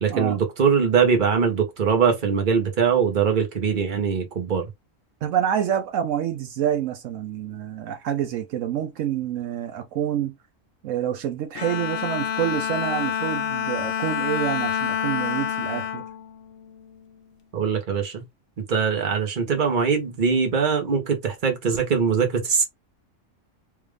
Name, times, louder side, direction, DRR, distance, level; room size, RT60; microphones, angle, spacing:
voice 1, 0.0-4.7 17.5-18.2 18.7-22.6, right 6 dB, 40° right, 1.1 m, -22 dB
voice 2, 5.2-10.3 10.8-16.0, right 10 dB, 75° right, 1.0 m, -27 dB
Bowed string instrument, 11.5-17.1, left 8 dB, 70° left, 0.9 m, -28 dB
3.5 x 2.4 x 3.2 m
omnidirectional pair, 1.3 m